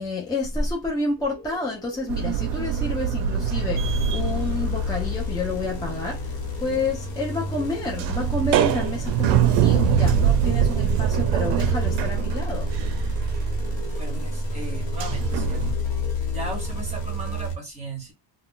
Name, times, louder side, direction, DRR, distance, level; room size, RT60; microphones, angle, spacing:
voice 1, 0.0-12.7, left 2 dB, 10° left, 0.4 m, -29 dB
sound 1, 1.2-17.5, right 3 dB, 35° right, 1.1 m, -45 dB
sound 2, 2.1-5.8 6.1-15.7, right 9 dB, 70° right, 0.5 m, -24 dB
sound 3, 3.8-17.6, left 1 dB, 55° left, 1.1 m, -29 dB
voice 2, 14.0-15.8 16.3-18.1, right 2 dB, 15° right, 1.1 m, -36 dB
2.3 x 2.2 x 3.6 m
cardioid pair, 170°, 44 cm